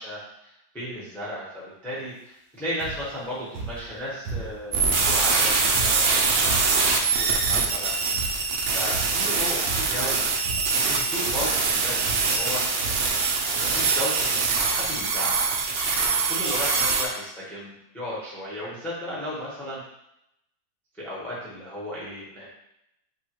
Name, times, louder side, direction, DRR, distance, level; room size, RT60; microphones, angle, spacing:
voice 1, 0.0-10.3 10.7-12.6 13.6-19.8 21.0-22.5, equal, ahead, -8 dB, 1.0 m, -35 dB
sound 1, 2.8-3.2 3.5-4.7 5.0-6.9 7.4-7.8 8.1-8.6 8.9-9.3 9.7-10.1 10.4-10.9 11.2-11.6 12.0-12.6 12.8-13.2 13.9-14.0 14.2-14.3, right 3 dB, 65° right, 1.4 m, -36 dB
sound 2, 4.7-17.0, right 4 dB, 90° right, 0.5 m, -23 dB
6.9 x 2.5 x 3.0 m, 0.82 s
omnidirectional pair, 1.8 m